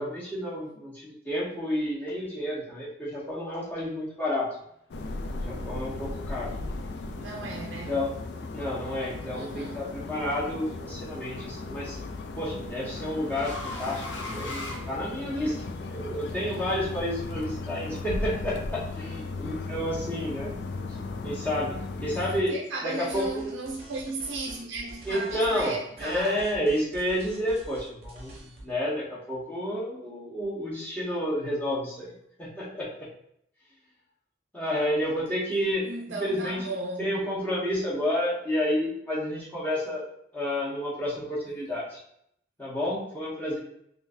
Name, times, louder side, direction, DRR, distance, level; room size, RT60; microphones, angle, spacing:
voice 1, 0.0-4.5 5.4-6.5 7.9-8.1 8.5-12.0 12.4-15.6 15.9-20.6 21.2-21.8 22.0-22.5 22.8-23.5 25.0-25.7 26.0-32.1 32.4-33.1 34.5-35.9 36.2-36.6 37.0-40.0 40.3-42.0 42.6-43.6, equal, 10° left, 1.0 m, -30 dB
sound 1, 4.9-22.4, left 3 dB, 65° left, 0.3 m, -36 dB
voice 2, 7.1-8.0 9.3-9.8 22.1-26.5 35.8-37.2, right 3 dB, 80° right, 0.4 m, -35 dB
sound 2, 9.8-10.2 11.6-15.6, left 2 dB, 85° left, 0.8 m, -40 dB
sound 3, 23.0-25.7 26.0-28.7, right 1 dB, 35° right, 0.8 m, -46 dB
3.7 x 2.5 x 2.6 m
head